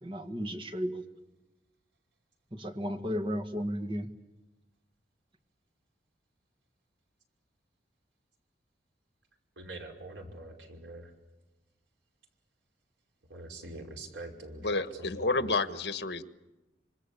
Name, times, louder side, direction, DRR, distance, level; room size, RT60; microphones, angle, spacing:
voice 1, 0.0-1.0 2.5-4.1, equal, 30° right, 8 dB, 1.9 m, -34 dB
voice 2, 9.6-11.1 13.3-15.5, right 2 dB, 85° right, 2 dB, 5.6 m, -44 dB
voice 3, 14.6-16.2, left 3 dB, 65° left, 11 dB, 1.4 m, -30 dB
27.0 x 26.0 x 8.5 m, 1.1 s
head